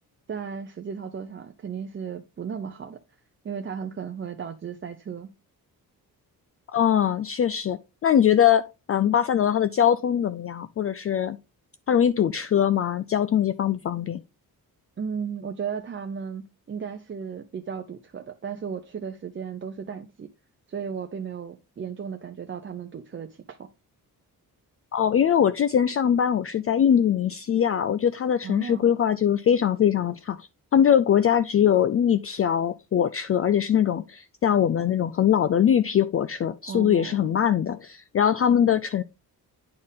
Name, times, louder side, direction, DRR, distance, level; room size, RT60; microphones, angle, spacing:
voice 1, 0.3-3.0 3.4-5.3 15.0-20.3 20.7-23.7 28.4-28.9 36.7-37.3, right 7 dB, 35° right, 0.6 m, -35 dB
voice 2, 6.7-11.4 11.9-14.2 24.9-30.5 30.7-39.0, left 9 dB, 40° left, 0.4 m, -22 dB
9.5 x 4.4 x 3.5 m
cardioid pair, 120°, 37 cm